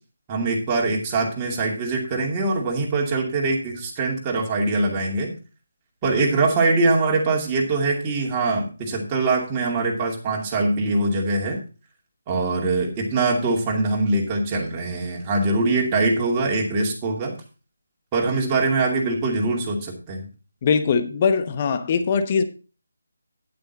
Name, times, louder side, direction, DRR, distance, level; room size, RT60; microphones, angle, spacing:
voice 1, 0.3-5.3 6.0-11.6 12.3-17.3 18.1-20.3, right 3 dB, 20° right, -1 dB, 2.5 m, -23 dB
voice 2, 20.6-22.4, left 6 dB, 30° left, 10 dB, 0.9 m, -21 dB
9.7 x 8.8 x 4.1 m, 0.34 s
figure-of-eight pair, 155°, 0 cm